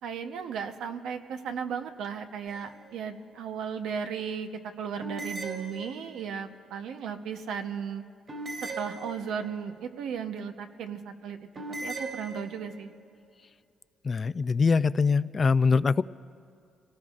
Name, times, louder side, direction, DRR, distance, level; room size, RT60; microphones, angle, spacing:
voice 1, 0.0-4.5 4.8-8.0 8.8-12.9, right 7 dB, 80° right, 6 dB, 0.9 m, -35 dB
sound 1, 2.5-3.1 5.0-6.3 8.3-9.6 11.5-12.8, right 2 dB, 45° right, 3.2 m, -39 dB
voice 2, 14.0-16.0, left 5 dB, 35° left, 16 dB, 0.3 m, -23 dB
29.0 x 18.0 x 2.5 m, 2.4 s
cardioid pair, 90°, 0 cm